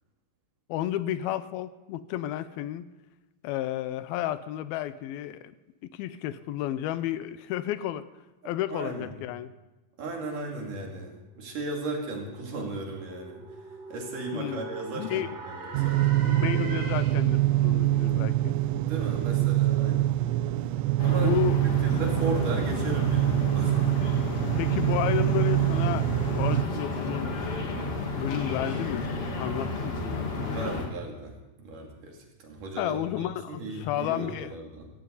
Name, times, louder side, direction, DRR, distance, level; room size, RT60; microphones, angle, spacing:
voice 1, 0.7-2.9 3.4-5.5 5.8-8.0 8.5-9.5 14.3-14.6 15.0-15.3 16.2-18.6 21.2-21.6 24.6-27.4 28.2-29.1 29.4-30.9 32.8-34.5, left 12 dB, 85° left, 13 dB, 2.5 m, -32 dB
voice 2, 8.4-9.1 10.0-13.5 13.9-16.4 18.8-20.2 21.0-21.4 21.8-23.9 30.5-34.9, right 2 dB, 60° right, 0 dB, 4.0 m, -36 dB
sound 1, 11.3-17.4, right 3 dB, 45° right, 4.0 m, -43 dB
sound 2, 15.7-26.6, right 16 dB, 90° right, 1.8 m, -25 dB
sound 3, 21.0-30.9, left 3 dB, 45° left, 2.6 m, -32 dB
16.5 x 16.0 x 4.0 m, 1.1 s
omnidirectional pair, 4.3 m